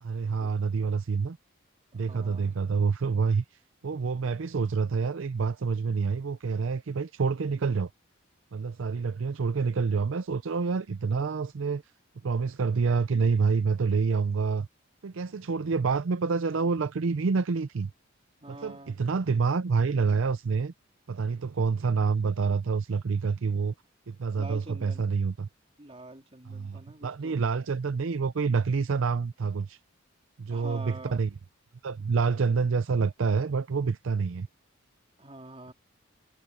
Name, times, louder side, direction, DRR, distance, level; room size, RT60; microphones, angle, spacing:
voice 1, 0.0-1.4 1.9-3.4 3.8-7.9 8.5-11.8 12.2-14.7 15.0-17.9 18.5-20.7 21.1-23.7 24.1-25.5 26.5-29.8 30.4-31.3 31.8-34.5, right 5 dB, 65° right, 0.5 m, -27 dB
voice 2, 1.9-2.5 18.4-19.0 24.4-25.1 25.8-27.3 30.5-31.2 35.2-35.7, right 2 dB, 30° right, 3.1 m, -45 dB
head